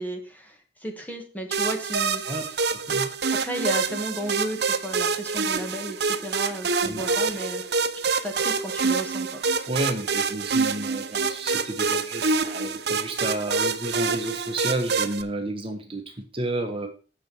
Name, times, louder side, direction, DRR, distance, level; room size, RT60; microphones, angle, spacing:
voice 1, 0.0-2.5 3.3-7.6 8.2-9.4, equal, 10° left, 3 dB, 2.1 m, -34 dB
sound 1, 1.5-15.2, right 4 dB, 65° right, 0.9 m, -26 dB
voice 2, 9.7-16.9, right 1 dB, 30° right, 3 dB, 1.4 m, -31 dB
10.0 x 6.9 x 4.9 m, 0.37 s
head